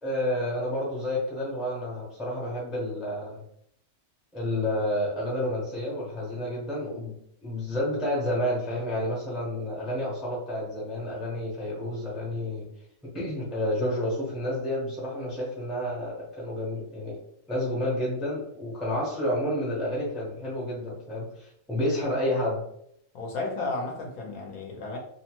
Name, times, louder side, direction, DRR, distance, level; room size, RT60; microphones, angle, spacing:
voice 1, 0.0-3.4 4.3-7.2 7.4-12.7 13.1-17.2 17.5-22.6, left 1 dB, ahead, 0.5 m, -30 dB
voice 2, 23.1-25.0, left 3 dB, 70° left, 1.1 m, -33 dB
2.8 x 2.1 x 2.9 m
omnidirectional pair, 1.6 m